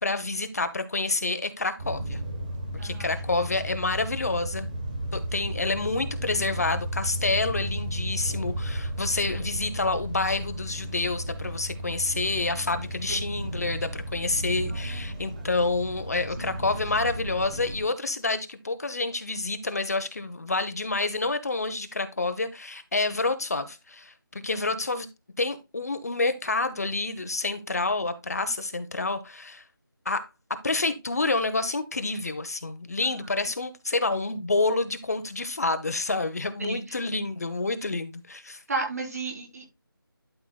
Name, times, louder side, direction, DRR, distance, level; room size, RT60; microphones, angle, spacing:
voice 1, 0.0-2.2 2.8-4.7 5.1-24.1 24.4-25.1 25.4-29.6 30.0-30.2 30.6-38.6, left 3 dB, 45° left, 0.9 m, -28 dB
sound 1, 1.8-17.8, right 1 dB, 20° right, 1.2 m, -34 dB
voice 2, 14.7-15.1 16.4-16.5 36.6-37.0 38.7-39.7, right 3 dB, 40° right, 3.8 m, -33 dB
12.0 x 5.9 x 2.3 m
figure-of-eight pair, 170°, 12 cm